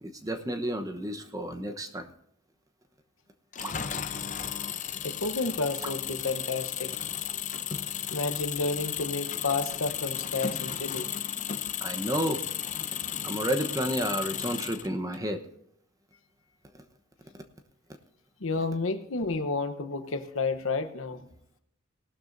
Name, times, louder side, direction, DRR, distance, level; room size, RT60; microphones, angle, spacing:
voice 1, 0.0-2.1 3.6-3.7 5.8-5.9 11.8-12.4 13.2-15.4 17.3-17.4, equal, 15° right, 6 dB, 0.9 m, -31 dB
Engine, 3.5-15.2, left 9 dB, 35° left, 0.7 m, -34 dB
voice 2, 5.0-6.9 8.1-11.1 18.4-21.3, left 3 dB, 70° left, 9 dB, 1.0 m, -31 dB
18.0 x 12.5 x 2.6 m, 0.74 s
head